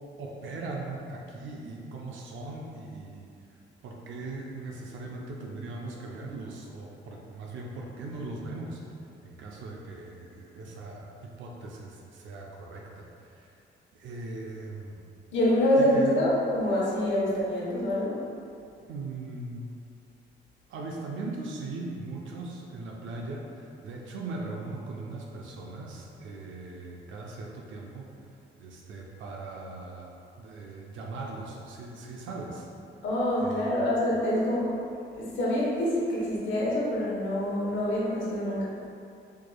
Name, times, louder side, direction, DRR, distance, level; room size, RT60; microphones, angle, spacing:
voice 1, 0.2-3.3 3.8-8.8 9.2-13.6 13.9-15.0 15.8-16.2 18.9-19.7 20.7-28.1 28.6-30.1 30.4-32.7 33.4-33.9, right 3 dB, 75° right, -1 dB, 0.5 m, -39 dB
voice 2, 15.3-18.2 33.0-34.8 35.2-38.6, left 1 dB, 75° left, -6 dB, 1.1 m, -26 dB
4.5 x 3.0 x 2.3 m, 2.5 s
cardioid pair, 90°, 20 cm